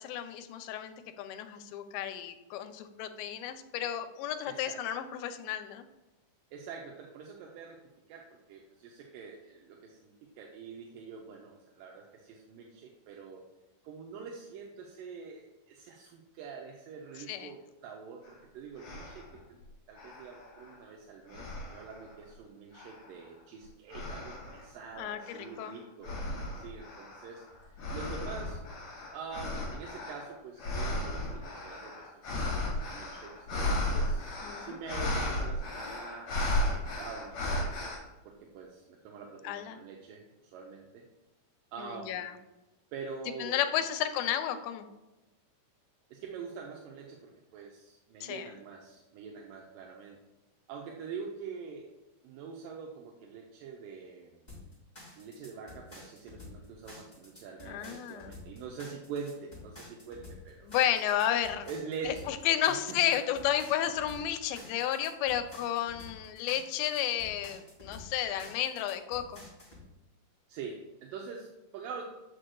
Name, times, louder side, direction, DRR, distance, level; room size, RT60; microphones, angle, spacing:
voice 1, 0.0-5.8 17.3-17.5 25.0-25.7 34.4-34.7 39.4-39.8 41.8-42.3 43.4-44.9 48.2-48.5 57.7-58.3 60.7-61.7 62.1-69.4, left 11 dB, 85° left, 8 dB, 2.4 m, -32 dB
voice 2, 4.5-4.8 6.5-7.8 8.1-13.4 13.8-19.6 19.9-28.6 29.1-32.5 32.8-36.3 37.0-38.0 38.3-40.2 40.5-41.1 41.7-42.2 42.9-43.9 46.1-50.2 50.7-51.9 52.2-54.4 55.2-60.7 61.7-62.3 62.7-63.0 64.7-64.8 70.5-72.0, right 5 dB, 80° right, -1 dB, 2.1 m, -45 dB
sound 1, 18.3-18.4 18.8-19.4 19.9-20.9 21.3-22.1 22.7-23.2 23.9-24.6 25.2-38.0, left 1 dB, 50° left, 3.0 m, -35 dB
sound 2, 54.5-69.8, left 2 dB, 20° left, 1.3 m, -50 dB
7.4 x 6.4 x 2.3 m, 1.0 s
omnidirectional pair, 4.3 m